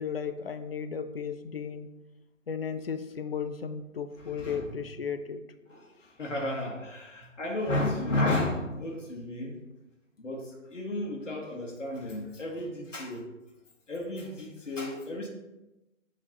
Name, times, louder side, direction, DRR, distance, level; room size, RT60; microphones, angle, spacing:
voice 1, 0.0-1.9 2.5-5.4, left 6 dB, 50° left, 9 dB, 0.5 m, -35 dB
voice 2, 4.2-4.9 5.7-9.6 10.2-13.3 13.9-15.3, left 1 dB, 65° left, -1 dB, 1.4 m, -33 dB
7.7 x 3.3 x 3.9 m, 0.98 s
figure-of-eight pair, 145°, 40 cm